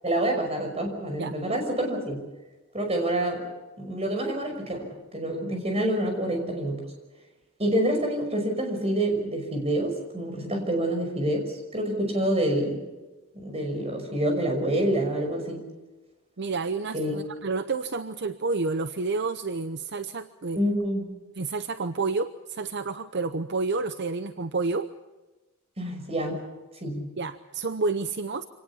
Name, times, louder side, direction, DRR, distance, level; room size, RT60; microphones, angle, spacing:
voice 1, 0.0-2.2 2.7-3.5 3.8-4.8 5.1-6.8 7.6-12.8 13.3-15.6 16.9-17.2 20.6-21.0 25.8-26.4 26.8-27.1, right 1 dB, 25° right, 3 dB, 5.7 m, -27 dB
voice 2, 16.4-20.6 21.4-24.9 26.3-26.4 27.2-28.4, right 3 dB, 50° right, 11 dB, 0.8 m, -29 dB
26.0 x 18.5 x 7.2 m, 1.1 s
head